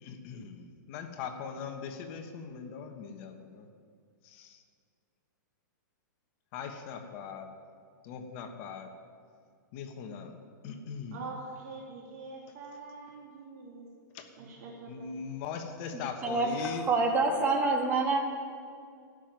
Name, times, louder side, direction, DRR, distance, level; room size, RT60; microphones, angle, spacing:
voice 1, 0.0-3.7 4.2-4.6 6.5-7.5 8.0-8.9 9.7-10.3 10.6-11.3 14.1-14.2 14.9-16.9, left 6 dB, 35° left, 5 dB, 1.2 m, -40 dB
voice 2, 11.1-13.9 14.4-15.1, right 4 dB, 50° right, -2 dB, 2.7 m, -44 dB
voice 3, 15.9-18.2, right 3 dB, 15° right, 1 dB, 1.9 m, -27 dB
13.5 x 7.8 x 9.5 m, 2.2 s
hypercardioid pair, 160°, 11 cm